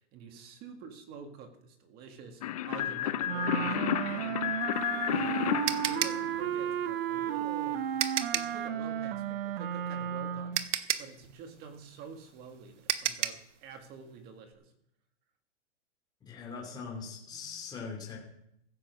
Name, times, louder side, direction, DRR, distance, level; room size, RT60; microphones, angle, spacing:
voice 1, 0.1-4.5 5.1-7.8 8.3-10.7 11.0-14.7 17.3-17.7, right 5 dB, 25° right, 6 dB, 1.8 m, -48 dB
sound 1, 2.4-6.9, left 12 dB, 35° left, 0.4 m, -32 dB
Wind instrument woodwind instrument, 3.2-10.6, right 10 dB, 50° right, 0.9 m, -33 dB
sound 2, 4.8-8.6 10.0-10.1 10.5-13.5, right 10 dB, 75° right, 1.1 m, -33 dB
voice 2, 16.2-18.2, left 5 dB, 10° left, -3 dB, 2.9 m, -41 dB
15.5 x 7.6 x 6.2 m, 0.77 s
hypercardioid pair, 160°, 36 cm